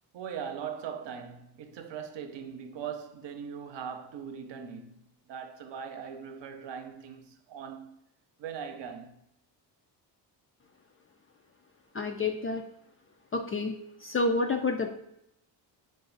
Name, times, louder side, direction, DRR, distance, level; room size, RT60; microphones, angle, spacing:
voice 1, 0.1-8.0 8.4-9.2, right 7 dB, 60° right, 0.8 m, -40 dB
voice 2, 11.9-12.6 13.3-13.7 14.0-14.9, left 3 dB, 30° left, 0.4 m, -29 dB
4.0 x 2.6 x 3.9 m
supercardioid pair, 70°, 48 cm